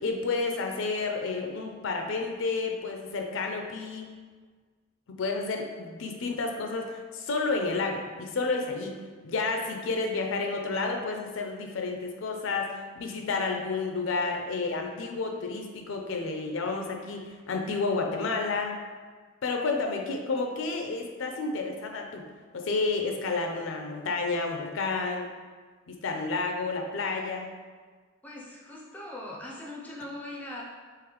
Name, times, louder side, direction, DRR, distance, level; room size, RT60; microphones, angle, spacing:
voice 1, 0.0-4.1 5.1-9.0 9.2-18.8 19.4-22.2 22.5-25.3 25.9-27.5, left 3 dB, 65° left, 2 dB, 0.4 m, -30 dB
voice 2, 28.2-30.6, left 1 dB, 5° left, -4 dB, 0.4 m, -40 dB
3.8 x 3.0 x 2.9 m, 1.5 s
head